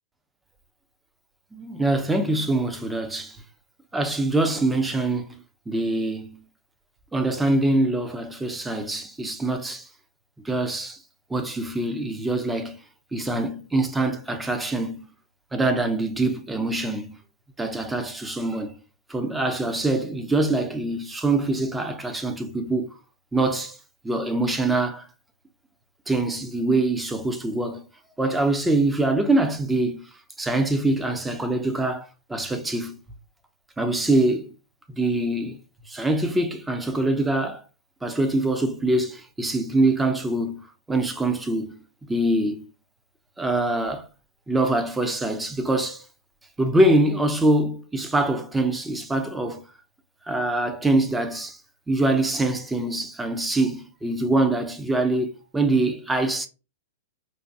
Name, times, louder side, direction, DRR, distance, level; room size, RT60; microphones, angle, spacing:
voice 1, 1.5-3.4 3.9-6.4 7.1-9.9 10.4-11.0 11.3-12.8 13.1-15.1 15.5-17.2 17.6-18.7 19.1-22.9 23.3-23.8 24.0-25.1 26.1-27.8 28.2-30.0 30.4-33.0 33.8-34.5 35.0-35.6 35.9-37.6 38.0-41.8 42.1-42.6 43.4-44.1 44.5-46.0 46.6-49.6 50.3-51.6 51.9-56.5, right 2 dB, 10° right, 0.6 m, -24 dB
4.6 x 2.2 x 2.7 m
hypercardioid pair, 120°, 0 cm